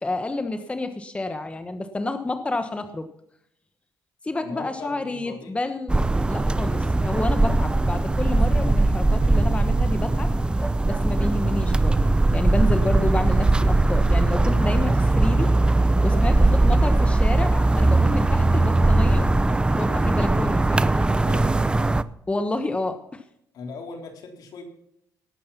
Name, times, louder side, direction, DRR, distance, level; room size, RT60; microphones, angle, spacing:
voice 1, 0.0-3.1 4.2-6.0 6.3-10.3 10.8-12.0 12.3-15.5 16.0-19.3 19.8-21.1 22.3-23.2, left 2 dB, 15° left, 8 dB, 1.2 m, -29 dB
voice 2, 4.4-5.6 15.9-16.3 21.1-21.5 23.5-24.6, left 4 dB, 70° left, 2 dB, 3.8 m, -39 dB
sound 1, 5.9-22.0, right 2 dB, 15° right, 0.6 m, -20 dB
18.5 x 7.7 x 5.8 m, 0.74 s
cardioid pair, 95°, 7 cm